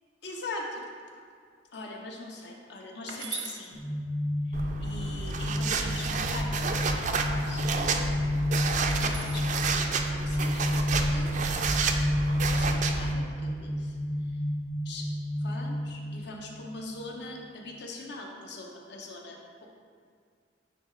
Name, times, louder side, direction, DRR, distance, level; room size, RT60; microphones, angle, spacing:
voice 1, 0.2-1.2 1.7-3.8 4.5-7.7 8.2-8.3 8.9-11.3 12.1-14.0 14.8-15.1 15.4-19.7, left 2 dB, 60° left, 0 dB, 0.9 m, -42 dB
sound 1, 3.1-3.6 5.8-6.4 9.0-9.5 10.8-11.3, right 7 dB, 85° right, 0.8 m, -40 dB
sound 2, 3.7-16.8, left 1 dB, 80° left, 1.5 m, -31 dB
sound 3, 4.5-13.1, right 4 dB, 40° right, 0.4 m, -30 dB
9.7 x 3.2 x 3.7 m, 2.1 s
head